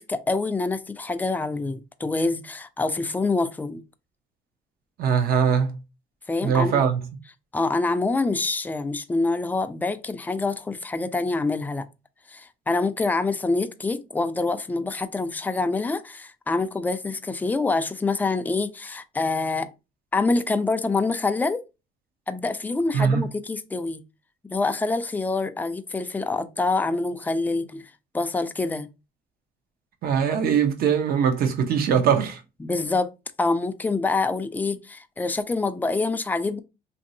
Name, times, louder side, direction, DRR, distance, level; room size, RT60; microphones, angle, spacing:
voice 1, 0.0-3.8 6.3-6.8 7.5-11.8 12.3-19.7 20.1-21.6 22.3-24.0 24.4-27.8 28.1-28.9 32.6-33.1 33.4-36.6, left 3 dB, 10° left, 0.3 m, -26 dB
voice 2, 5.0-5.8 6.4-7.0 22.9-23.2 30.0-32.4, right 7 dB, 65° right, 0.7 m, -21 dB
3.1 x 2.6 x 2.7 m
cardioid pair, 110°, 17 cm